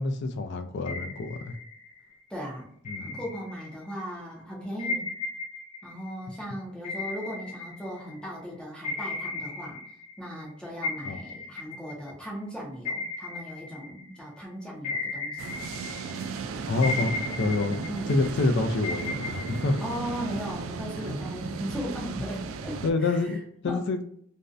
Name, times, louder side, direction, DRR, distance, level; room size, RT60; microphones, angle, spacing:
voice 1, 0.0-1.6 2.9-3.2 11.0-11.2 16.7-17.1 17.4-19.8 21.1-21.2 22.8-24.0, left 3 dB, 60° left, 7 dB, 0.4 m, -27 dB
sound 1, 0.9-2.1 2.8-4.0 4.8-8.4 8.8-10.5 10.8-14.4 14.8-16.4 16.8-18.4 18.8-20.5, left 3 dB, 40° left, 0.8 m, -36 dB
voice 2, 2.3-2.7 3.0-5.1 5.8-9.8 10.2-15.6 16.7-17.5 17.9-18.2 19.8-23.4 23.7-23.8, equal, 5° left, -5 dB, 0.5 m, -37 dB
sound 2, 15.4-22.9, right 4 dB, 90° right, 0.3 m, -35 dB
2.5 x 2.1 x 2.4 m, 0.68 s
head